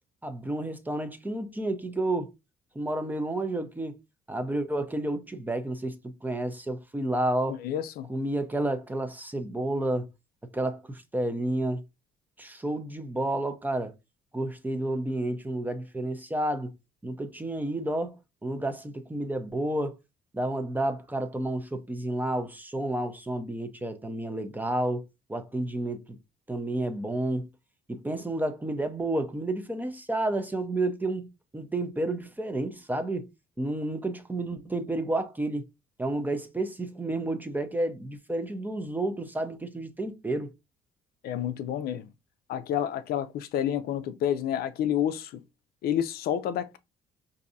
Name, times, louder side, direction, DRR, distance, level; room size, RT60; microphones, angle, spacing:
voice 1, 0.2-2.3 2.8-3.9 4.3-6.0 6.2-7.6 8.1-10.1 10.5-11.8 12.4-13.9 14.3-16.7 17.0-20.0 20.3-26.0 26.5-27.5 27.9-33.3 33.6-35.6 36.0-40.5, right 1 dB, 10° right, 0.6 m, -30 dB
voice 2, 7.5-8.1 41.2-42.1 42.5-45.4 45.8-46.8, left 10 dB, 65° left, 0.4 m, -29 dB
4.5 x 2.6 x 2.6 m
cardioid pair, 110°, 17 cm